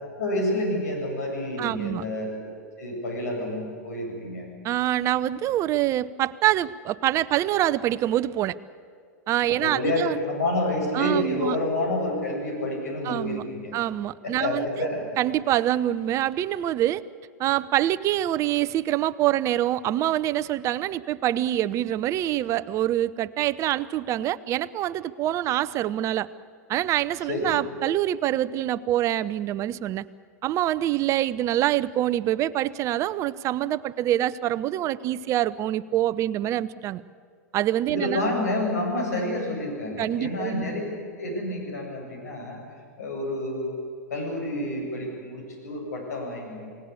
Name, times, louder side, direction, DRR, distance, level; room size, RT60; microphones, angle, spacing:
voice 1, 0.0-2.3 2.8-4.5 9.5-13.7 14.2-15.0 27.3-27.6 37.9-40.8 41.2-42.6 43.0-43.8 44.1-46.6, left 1 dB, 70° left, 1 dB, 7.9 m, -29 dB
voice 2, 1.6-2.0 4.6-8.5 9.3-10.2 10.9-11.6 13.0-13.4 13.7-14.7 15.2-17.0 17.4-26.3 26.7-30.0 30.4-37.0 37.5-38.3 40.0-40.7, right 13 dB, 35° right, 16 dB, 0.7 m, -25 dB
28.0 x 18.5 x 8.5 m, 2.1 s
figure-of-eight pair, 100°, 9 cm